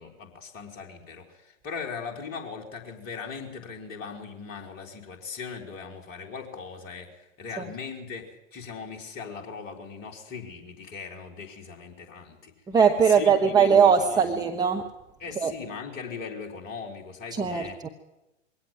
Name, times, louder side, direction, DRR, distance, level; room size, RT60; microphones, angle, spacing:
voice 1, 0.0-12.5 13.0-14.3 15.2-17.8, left 5 dB, 25° left, 1 dB, 3.9 m, -39 dB
voice 2, 12.7-14.9 15.4-15.5 17.4-17.9, right 6 dB, 10° right, 3 dB, 1.1 m, -20 dB
22.5 x 17.5 x 7.7 m, 0.96 s
figure-of-eight pair, 110°, 38 cm